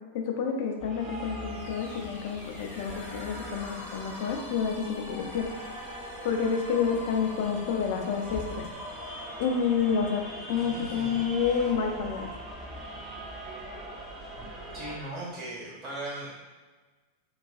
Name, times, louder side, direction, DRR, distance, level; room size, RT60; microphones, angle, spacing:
voice 1, 0.1-5.5 6.2-8.7 9.4-10.2 10.5-12.3, left 6 dB, 50° left, 3 dB, 0.3 m, -29 dB
sound 1, 0.8-15.0, right 1 dB, 5° right, 0.5 m, -42 dB
sound 2, 1.3-11.0, left 1 dB, 70° left, 0.8 m, -46 dB
voice 2, 10.5-11.2 14.4-14.5 14.7-16.3, right 1 dB, 30° right, -7 dB, 1.1 m, -38 dB
2.3 x 2.2 x 2.4 m, 1.3 s
figure-of-eight pair, 90°, 0 cm